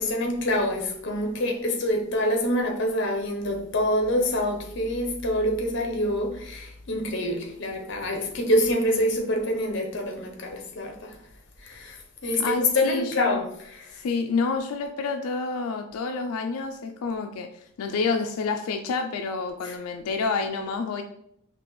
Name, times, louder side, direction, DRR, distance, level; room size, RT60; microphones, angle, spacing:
voice 1, 0.0-11.2 11.6-14.0 19.6-19.7, left 1 dB, 55° left, 0.7 m, -26 dB
voice 2, 12.4-13.4 13.9-17.5 17.8-21.0, left 4 dB, 85° left, 0.3 m, -28 dB
4.2 x 2.8 x 3.1 m
head